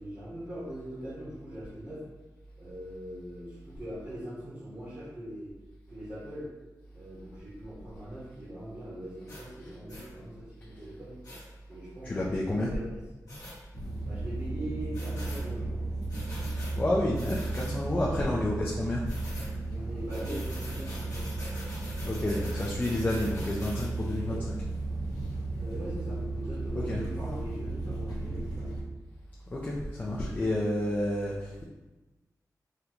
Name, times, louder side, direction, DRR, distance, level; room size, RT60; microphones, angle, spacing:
voice 1, 0.0-2.0 2.6-5.5 5.9-6.5 6.9-11.2 11.7-13.0 14.0-15.8 18.1-18.4 19.7-21.2 25.6-28.7 30.0-30.1, right 1 dB, 35° right, -9 dB, 0.9 m, -41 dB
sound 1, 9.3-9.4 9.9-10.1 11.2-11.4 13.3-13.6 14.9-15.4 16.1-16.7 17.1-17.7 19.1-19.5 20.1-23.9, left 1 dB, 55° left, 1.1 m, -44 dB
voice 2, 12.0-12.7 16.4-19.0 22.0-24.6 26.7-27.0 29.5-31.6, left 1 dB, 25° left, -4 dB, 0.4 m, -30 dB
sound 2, 13.7-28.8, right 2 dB, 80° left, 0.9 m, -34 dB
3.7 x 2.2 x 2.9 m, 1.1 s
wide cardioid pair, 140°, 7 cm